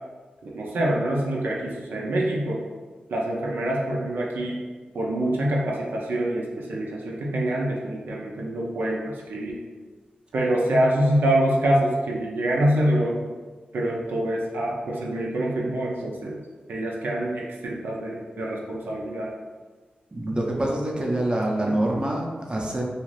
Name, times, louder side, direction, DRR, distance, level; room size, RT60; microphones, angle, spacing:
voice 1, 0.4-2.6 3.1-4.6 4.9-9.6 10.3-13.2 13.7-16.4 16.7-19.3, right 1 dB, 80° right, -3 dB, 0.4 m, -25 dB
voice 2, 20.1-22.8, right 1 dB, 30° right, -1 dB, 0.6 m, -26 dB
2.5 x 2.4 x 3.1 m, 1.4 s
cardioid pair, 55°, 3 cm